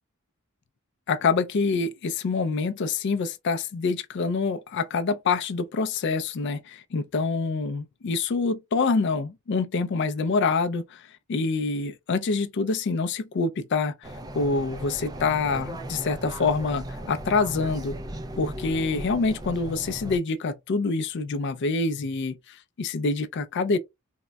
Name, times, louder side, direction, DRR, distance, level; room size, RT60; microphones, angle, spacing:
voice 1, 1.1-11.0 11.3-13.9 14.3-18.0 18.4-22.4 22.8-23.8, left 4 dB, 55° left, 0.4 m, -26 dB
sound 1, 14.0-20.2, right 1 dB, 20° right, 0.3 m, -37 dB
3.6 x 2.0 x 2.2 m
head